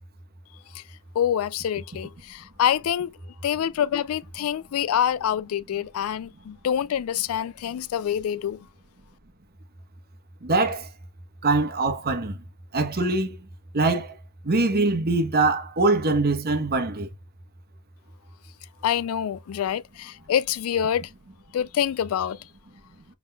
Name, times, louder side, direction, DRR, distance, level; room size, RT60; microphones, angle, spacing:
voice 1, 1.2-3.1 3.4-8.6 18.8-21.1 21.5-22.4, left 9 dB, 75° left, 0.3 m, -26 dB
voice 2, 10.4-10.9 11.4-12.4 12.7-13.3 13.7-14.1 14.4-17.1, right 3 dB, 45° right, 1.1 m, -23 dB
5.8 x 3.8 x 2.3 m
head